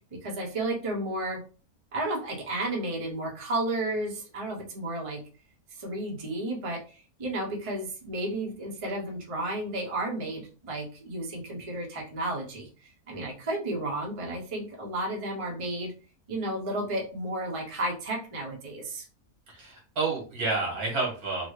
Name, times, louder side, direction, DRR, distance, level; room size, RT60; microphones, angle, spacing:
voice 1, 0.1-1.4 1.9-5.2 5.7-15.9 16.3-19.0, right 1 dB, 30° right, -1 dB, 0.8 m, -32 dB
voice 2, 19.5-21.5, right 3 dB, 75° right, -2 dB, 1.8 m, -29 dB
4.0 x 2.1 x 3.1 m, 0.35 s
omnidirectional pair, 1.6 m